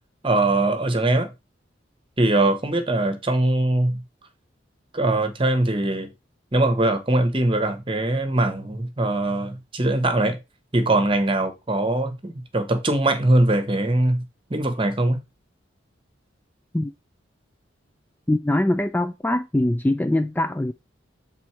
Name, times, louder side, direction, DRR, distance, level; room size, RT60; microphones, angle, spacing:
voice 1, 0.2-1.3 2.2-4.0 4.9-6.1 6.5-10.4 10.7-14.2 14.5-15.2, right 2 dB, 25° right, 1.1 m, -21 dB
voice 2, 18.3-20.7, left 1 dB, 10° left, 0.3 m, -22 dB
7.9 x 4.1 x 4.4 m
head